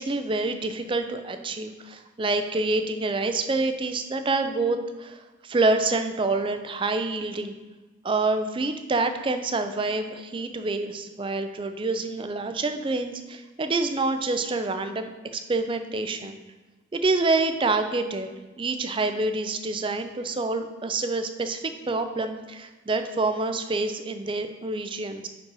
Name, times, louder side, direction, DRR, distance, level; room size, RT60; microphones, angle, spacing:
voice 1, 0.0-7.5 8.0-16.4 16.9-18.3 18.6-25.3, right 3 dB, 25° right, 8 dB, 0.4 m, -27 dB
5.3 x 5.3 x 4.6 m, 1.2 s
head